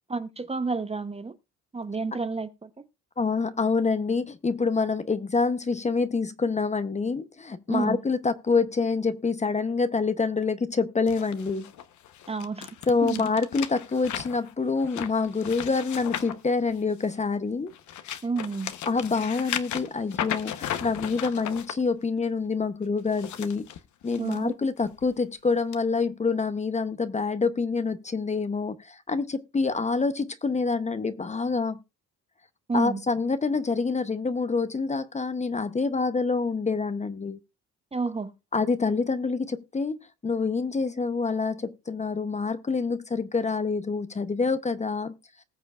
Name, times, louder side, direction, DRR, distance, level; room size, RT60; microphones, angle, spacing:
voice 1, 0.1-1.3 1.7-2.7 7.7-8.0 12.3-12.8 13.0-13.2 18.2-18.7 24.2-24.6 32.7-33.0 37.9-38.3, right 4 dB, 20° right, 0.7 m, -30 dB
voice 2, 3.2-11.7 12.9-17.7 18.9-20.5 20.8-23.7 24.0-31.8 32.7-37.4 38.5-40.0 40.2-45.1, left 4 dB, 25° left, 0.7 m, -26 dB
sound 1, 11.1-17.2 17.7-21.7 23.0-24.4 24.8-25.1 25.7-25.8, left 10 dB, 70° left, 0.9 m, -36 dB
19.5 x 6.8 x 2.4 m
cardioid pair, 90°, 30 cm